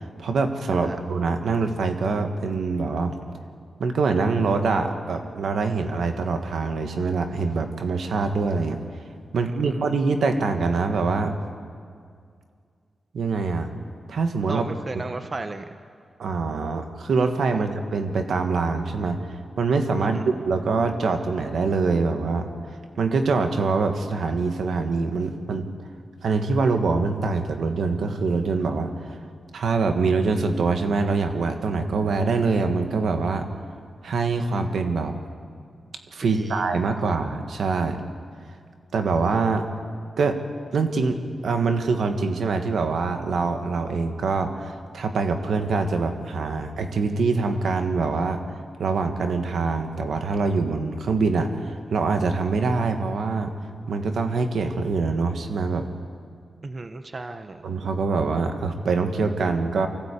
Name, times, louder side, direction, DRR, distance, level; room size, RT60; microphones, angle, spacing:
voice 1, 0.2-3.2 3.8-8.8 9.3-11.3 13.1-13.7 14.1-14.7 14.9-15.0 16.2-22.5 23.0-25.7 26.2-29.1 29.5-33.5 34.0-35.1 36.1-38.0 38.9-39.6 40.2-40.4 40.7-41.2 41.4-53.5 53.9-55.9 57.6-59.9, right 4 dB, 80° right, 6 dB, 1.7 m, -24 dB
voice 2, 14.5-15.6 20.0-20.3 36.2-36.7 36.9-37.1 56.6-57.7, right 3 dB, 40° right, 8 dB, 0.9 m, -35 dB
24.5 x 16.0 x 8.5 m, 2.2 s
cardioid pair, 90°, 0 cm